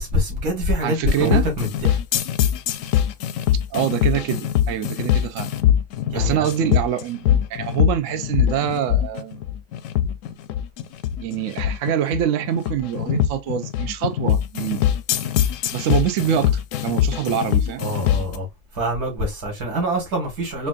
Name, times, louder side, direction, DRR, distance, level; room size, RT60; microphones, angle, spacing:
voice 1, 0.0-2.0 6.1-6.5 17.8-18.5 18.8-20.7, equal, 85° right, 2.3 m, -25 dB
voice 2, 0.8-1.5 3.7-5.5 6.1-9.4 11.2-14.8 15.7-17.8, right 10 dB, 65° right, 0.8 m, -25 dB
sound 1, 1.1-18.4, left 11 dB, 70° left, 0.8 m, -22 dB
4.3 x 2.6 x 2.4 m
omnidirectional pair, 1.6 m